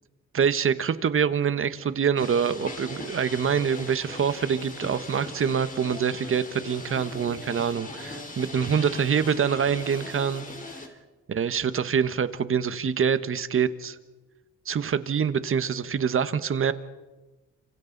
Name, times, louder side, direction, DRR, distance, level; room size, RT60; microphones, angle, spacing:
voice 1, 0.3-10.4 11.3-14.0 14.6-16.7, right 7 dB, 45° right, 12 dB, 1.3 m, -25 dB
sound 1, 2.2-10.9, left 2 dB, 25° left, 3.8 m, -39 dB
29.5 x 26.5 x 4.1 m, 1.2 s
cardioid pair, 90°, 30 cm